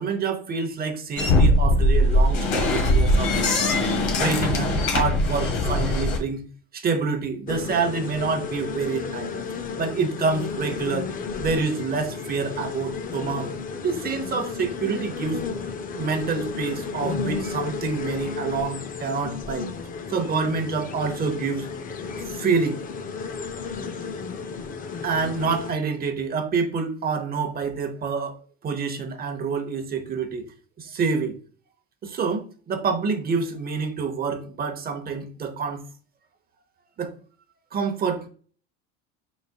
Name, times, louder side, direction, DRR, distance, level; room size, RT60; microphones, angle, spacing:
voice 1, 0.0-3.8 4.1-6.5 6.7-9.3 9.8-11.1 11.4-15.4 16.0-19.7 20.1-21.7 22.3-22.8 25.0-30.5 30.8-31.4 32.0-35.8 37.0-37.1 37.7-38.3, right 5 dB, 30° right, 0.8 m, -27 dB
sound 1, 1.2-6.2, left 1 dB, 80° left, 1.4 m, -20 dB
sound 2, 7.5-25.7, left 5 dB, 30° left, 0.5 m, -33 dB
4.8 x 4.0 x 2.3 m
cardioid pair, 125°, 30 cm